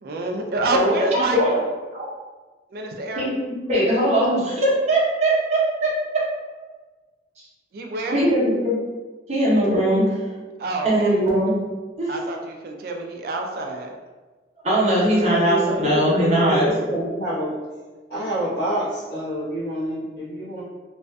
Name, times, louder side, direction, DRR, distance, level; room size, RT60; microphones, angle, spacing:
voice 1, 0.0-1.6 2.7-3.2 7.7-8.2 10.6-11.1 12.1-13.9, right 2 dB, 55° right, 2 dB, 0.3 m, -28 dB
voice 2, 0.7-1.5 1.9-2.1 3.2-6.2 6.5-6.6 8.1-8.8 9.3-10.2 10.8-11.5 12.0-12.2 14.6-16.7, right 1 dB, 40° right, -6 dB, 0.7 m, -20 dB
voice 3, 15.2-17.5 18.1-20.6, right 1 dB, 60° left, -10 dB, 1.0 m, -27 dB
2.5 x 2.3 x 2.2 m, 1.3 s
head